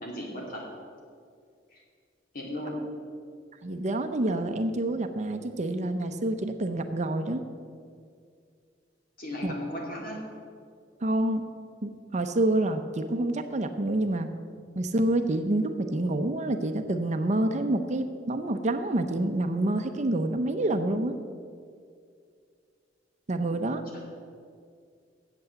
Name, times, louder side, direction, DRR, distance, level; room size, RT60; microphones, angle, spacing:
voice 1, 0.0-0.7 1.7-1.8 2.3-2.8 9.2-10.2 23.5-23.6 23.9-24.0, left 1 dB, 50° left, -1 dB, 2.5 m, -36 dB
voice 2, 3.6-7.4 9.4-9.5 11.0-11.4 11.8-14.3 14.8-21.2 23.3-23.8, right 1 dB, 40° right, 7 dB, 0.6 m, -27 dB
8.3 x 7.7 x 8.1 m, 2.2 s
head